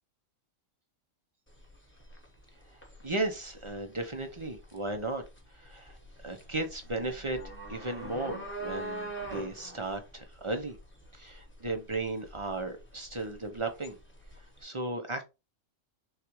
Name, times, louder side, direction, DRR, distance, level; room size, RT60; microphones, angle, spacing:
sound 1, 1.5-14.6, right 1 dB, 10° left, 1.1 m, -45 dB
voice 1, 3.0-5.2 5.5-7.4 7.7-10.8 11.1-14.0 14.6-15.2, right 2 dB, 30° right, 0.6 m, -35 dB
6.4 x 2.4 x 3.0 m
omnidirectional pair, 1.4 m